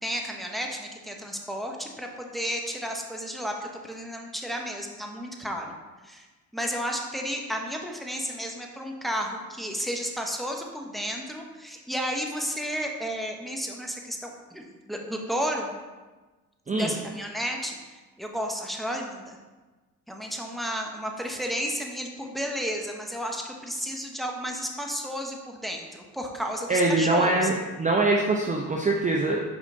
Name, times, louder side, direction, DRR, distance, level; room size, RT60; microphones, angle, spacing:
voice 1, 0.0-5.8 6.0-6.2 6.5-15.7 16.7-17.8 18.2-19.4 20.1-27.5, equal, ahead, 1 dB, 1.0 m, -32 dB
voice 2, 16.7-17.0 26.7-29.4, right 2 dB, 20° right, 0 dB, 0.7 m, -23 dB
5.3 x 5.0 x 3.8 m, 1.3 s
hypercardioid pair, 60°, 40 cm